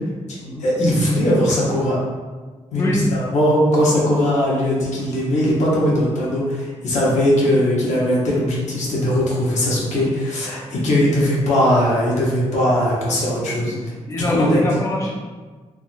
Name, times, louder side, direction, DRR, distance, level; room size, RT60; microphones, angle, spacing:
voice 1, 0.3-2.0 2.7-13.7 14.2-14.7, equal, 90° left, -6 dB, 0.9 m, -19 dB
voice 2, 14.1-15.1, left 1 dB, 25° left, -3 dB, 0.5 m, -24 dB
3.5 x 2.3 x 2.4 m, 1.4 s
cardioid pair, 85°, 12 cm